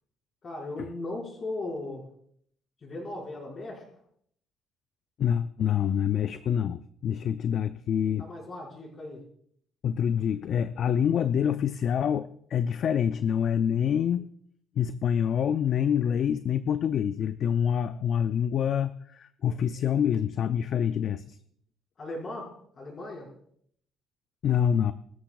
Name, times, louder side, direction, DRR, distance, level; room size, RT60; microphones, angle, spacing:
voice 1, 0.4-2.0 2.8-3.8 8.2-9.2 22.0-23.3, left 2 dB, 30° left, -2 dB, 5.1 m, -37 dB
voice 2, 5.2-8.3 9.8-14.3 14.8-21.4 24.4-24.9, left 8 dB, 50° left, 11 dB, 0.4 m, -26 dB
22.0 x 13.0 x 2.3 m, 0.66 s
cardioid pair, 140°, 0 cm